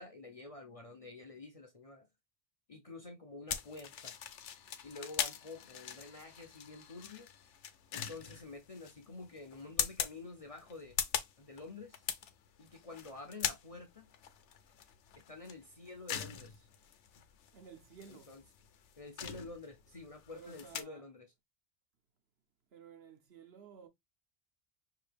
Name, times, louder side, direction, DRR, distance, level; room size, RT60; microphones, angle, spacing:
voice 1, 0.0-2.1 2.7-4.1 4.8-7.3 7.9-11.0 11.4-12.0 12.6-14.1 15.2-16.7 18.1-18.4 19.0-21.3, left 3 dB, 35° left, 0.6 m, -49 dB
sound 1, 3.5-20.8, left 8 dB, 75° left, 1.0 m, -41 dB
voice 2, 17.5-18.4 20.3-21.0 22.7-23.9, right 6 dB, 60° right, 1.0 m, -54 dB
5.7 x 2.7 x 3.3 m
omnidirectional pair, 1.2 m